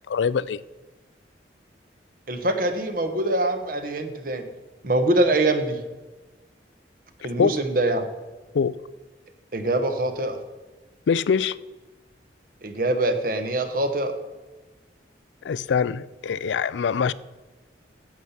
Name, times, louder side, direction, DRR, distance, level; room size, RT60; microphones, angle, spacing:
voice 1, 0.1-0.6 7.4-7.6 8.5-8.8 11.1-11.6 15.4-17.1, left 6 dB, 90° left, 0.4 m, -23 dB
voice 2, 2.3-4.5 4.8-5.8 7.2-8.0 9.5-10.4 12.6-14.1, right 2 dB, 50° right, 1.1 m, -24 dB
9.5 x 8.1 x 5.7 m
head